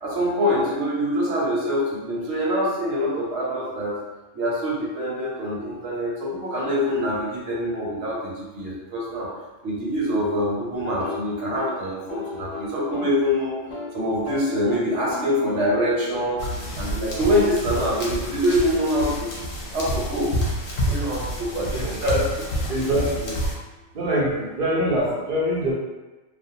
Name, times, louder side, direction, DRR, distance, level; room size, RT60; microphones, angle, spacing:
voice 1, 0.0-4.0 4.3-9.3 9.6-13.6 13.9-16.4 16.8-19.3 19.7-20.3 20.9-22.0, equal, 70° right, -6 dB, 1.0 m, -25 dB
sound 1, 10.9-13.2 13.5-13.9 14.2-18.1, left 4 dB, 85° left, 0.3 m, -38 dB
sound 2, 16.4-23.5, equal, 60° left, 0.7 m, -29 dB
voice 2, 21.5-22.2 22.7-23.4 23.9-25.7, equal, 55° right, -5 dB, 0.7 m, -24 dB
2.4 x 2.0 x 2.7 m, 1.1 s
omnidirectional pair, 1.2 m